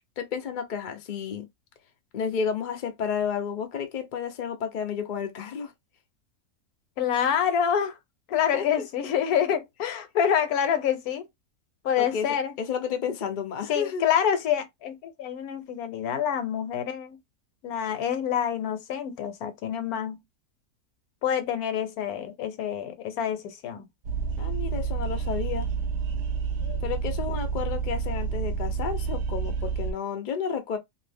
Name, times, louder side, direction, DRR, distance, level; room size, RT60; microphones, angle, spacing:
voice 1, 0.2-1.5 2.1-5.7 8.3-8.8 12.0-14.0 24.4-25.7 26.8-30.8, left 7 dB, 55° left, 0.5 m, -31 dB
voice 2, 7.0-8.0 8.3-11.3 11.8-12.6 13.7-17.2 17.6-20.2 21.2-23.9 26.6-26.8, left 8 dB, 75° left, 1.1 m, -27 dB
sound 1, 24.0-29.9, right 6 dB, 65° right, 0.7 m, -29 dB
2.6 x 2.5 x 3.4 m
omnidirectional pair, 1.7 m